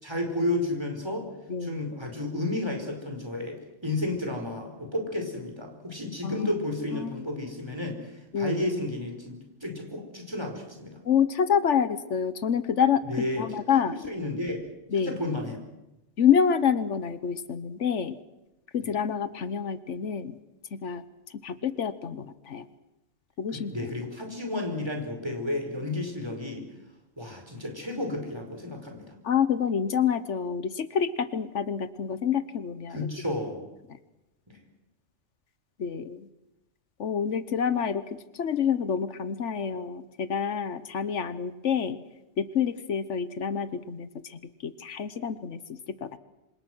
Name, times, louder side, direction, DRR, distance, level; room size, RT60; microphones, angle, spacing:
voice 1, 0.0-1.3 1.6-3.6 3.8-8.0 8.3-11.0 13.1-13.4 13.7-14.6 14.9-15.6 23.5-26.6 27.2-29.1 32.9-33.6 34.5-34.6, left 1 dB, 20° right, 3 dB, 5.0 m, -32 dB
voice 2, 11.0-13.0 13.4-14.0 14.9-15.1 16.2-18.2 18.7-20.4 20.7-21.0 21.4-22.7 23.4-23.7 29.2-33.1 35.8-36.3 37.0-38.0 38.3-42.0 42.4-46.2, left 7 dB, 80° left, 13 dB, 1.4 m, -27 dB
26.5 x 26.5 x 6.3 m, 0.96 s
omnidirectional pair, 1.2 m